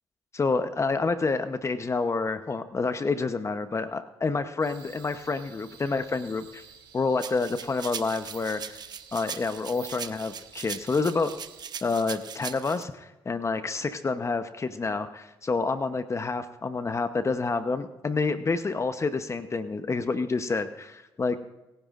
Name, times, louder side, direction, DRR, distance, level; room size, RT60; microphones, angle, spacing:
voice 1, 0.3-6.6 6.9-8.8 9.1-11.3 11.8-21.4, left 4 dB, 35° left, 10 dB, 0.9 m, -28 dB
sound 1, 4.6-11.6, right 8 dB, 75° right, 2.8 m, -51 dB
sound 2, 7.2-12.8, right 7 dB, 55° right, 0.9 m, -39 dB
21.5 x 10.5 x 2.5 m, 1.0 s
supercardioid pair, 60°, 9 cm